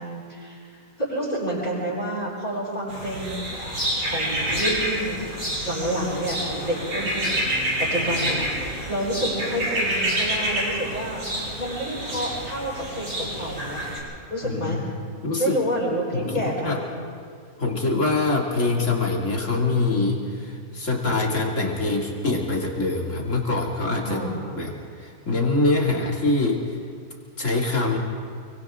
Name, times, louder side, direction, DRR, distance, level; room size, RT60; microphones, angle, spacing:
voice 1, 0.0-3.5 4.1-5.2 5.6-7.4 7.8-8.5 8.9-11.2 11.6-13.8 14.3-14.8 15.4-16.9 24.0-24.7, right 1 dB, 30° left, -11 dB, 7.8 m, -29 dB
sound 1, 2.9-14.0, right 1 dB, 65° right, 6.5 m, -28 dB
voice 2, 14.4-14.8 15.2-15.6 16.1-16.8 17.6-24.2 24.6-24.7 25.0-26.6 27.4-28.0, left 3 dB, 55° left, -1 dB, 3.1 m, -24 dB
29.5 x 24.0 x 3.8 m, 2.2 s
omnidirectional pair, 1.5 m